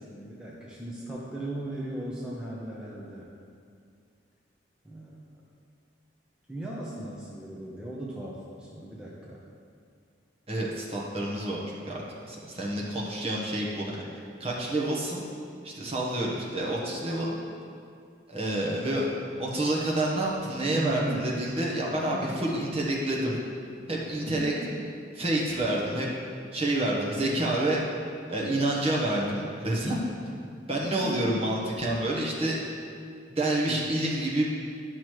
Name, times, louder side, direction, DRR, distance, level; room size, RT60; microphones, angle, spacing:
voice 1, 0.0-3.3 4.8-5.4 6.5-9.4 20.7-21.3 22.0-22.4 24.4-24.8 27.2-27.5 30.9-31.3 33.7-34.0, right 1 dB, 5° right, -6 dB, 0.7 m, -37 dB
voice 2, 10.5-14.0 14.4-15.2 15.6-17.4 18.3-19.1 19.4-23.4 23.9-24.5 25.2-26.1 26.5-27.8 28.3-30.0 30.7-32.6 33.3-34.5, right 1 dB, 30° right, -3 dB, 1.0 m, -28 dB
10.5 x 6.1 x 3.1 m, 2.3 s
head